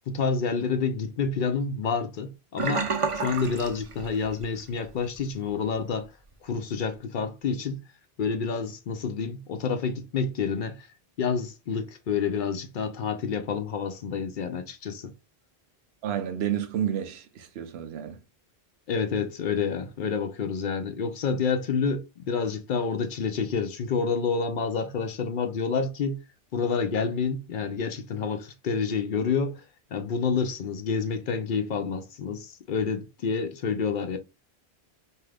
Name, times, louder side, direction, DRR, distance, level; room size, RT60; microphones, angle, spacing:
voice 1, 0.1-6.1 6.4-7.8 8.2-10.9 11.2-15.1 18.9-26.2 26.5-29.6 29.9-34.2, left 5 dB, 60° left, 0.6 m, -28 dB
Sink (filling or washing), 2.6-4.6 4.9-5.2 5.6-5.7, right 4 dB, 45° right, 0.4 m, -30 dB
voice 2, 16.0-18.2, right 10 dB, 85° right, 0.8 m, -30 dB
2.6 x 2.4 x 3.2 m
omnidirectional pair, 1.0 m